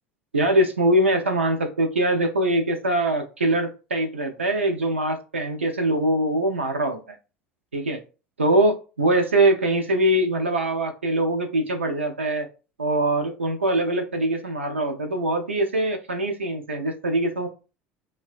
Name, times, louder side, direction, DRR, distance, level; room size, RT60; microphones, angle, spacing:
voice 1, 0.3-7.2 7.7-8.0 8.4-12.5 12.8-17.5, right 1 dB, 80° right, 4 dB, 0.4 m, -23 dB
2.4 x 2.1 x 2.4 m, 0.33 s
figure-of-eight pair, 70°, 6 cm